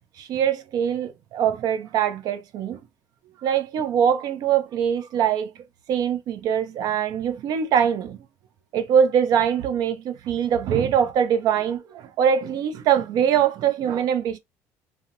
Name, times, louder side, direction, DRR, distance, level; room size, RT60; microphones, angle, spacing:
voice 1, 0.2-2.8 3.4-5.5 5.9-8.2 8.7-14.4, right 8 dB, 60° right, 0.6 m, -23 dB
2.3 x 2.1 x 2.8 m
supercardioid pair, 90°, 8 cm